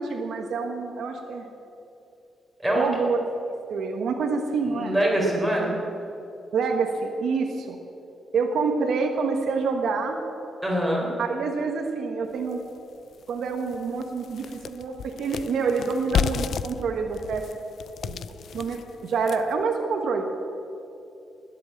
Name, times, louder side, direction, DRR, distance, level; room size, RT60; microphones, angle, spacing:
voice 1, 0.0-1.5 2.7-5.0 6.5-7.8 8.3-10.2 11.2-12.6 13.3-17.4 18.0-18.2 18.5-20.2, right 4 dB, 70° right, 3 dB, 1.4 m, -27 dB
voice 2, 4.7-5.8 10.6-11.1, right 1 dB, 5° right, -4 dB, 4.0 m, -24 dB
sound 1, 12.5-12.6 13.1-13.2 13.6-19.6, left 7 dB, 60° left, 0.4 m, -32 dB
20.0 x 8.5 x 7.5 m, 2.8 s
cardioid pair, 145°, 0 cm